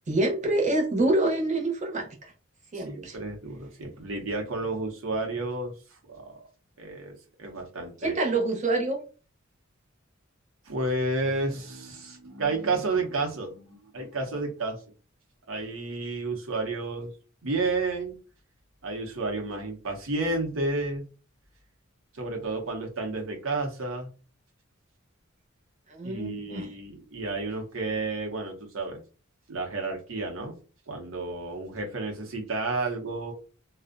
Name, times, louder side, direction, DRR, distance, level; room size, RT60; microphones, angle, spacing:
voice 1, 0.1-2.3 2.7-3.2 8.0-9.0 25.9-26.7, right 2 dB, 35° right, 1 dB, 0.7 m, -26 dB
voice 2, 2.7-5.7 6.1-6.4 6.8-8.3 10.7-14.8 15.5-17.1 17.4-18.2 18.8-21.0 22.1-24.1 26.0-29.0 29.5-30.6 30.9-33.3, right 3 dB, 75° right, 2 dB, 0.7 m, -31 dB
2.5 x 2.1 x 2.4 m, 0.36 s
head